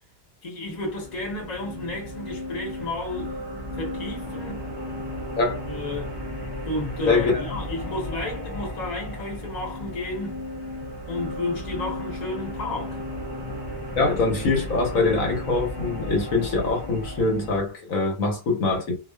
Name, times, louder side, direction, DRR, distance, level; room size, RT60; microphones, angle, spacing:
voice 1, 0.4-3.4 3.7-4.6 5.6-6.1 6.6-10.4 11.1-13.0, left 2 dB, 35° left, 1.0 m, -32 dB
sound 1, 0.6-17.6, left 1 dB, 30° right, 0.4 m, -34 dB
voice 2, 7.1-7.4 14.0-19.0, left 3 dB, 70° left, 1.2 m, -23 dB
2.4 x 2.4 x 2.2 m
omnidirectional pair, 1.5 m